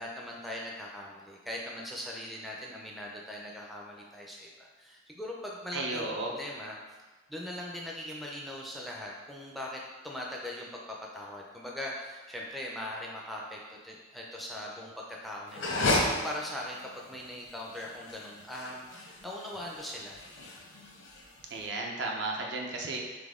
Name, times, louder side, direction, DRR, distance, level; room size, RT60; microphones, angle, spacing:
voice 1, 0.0-6.1 6.3-6.8 7.3-20.2, left 1 dB, ahead, -3 dB, 0.4 m, -40 dB
voice 2, 5.7-6.3 21.5-23.3, right 2 dB, 65° right, 0 dB, 0.7 m, -34 dB
sound 1, 15.5-21.6, left 2 dB, 90° left, 0.8 m, -33 dB
4.0 x 3.3 x 3.6 m, 1.2 s
head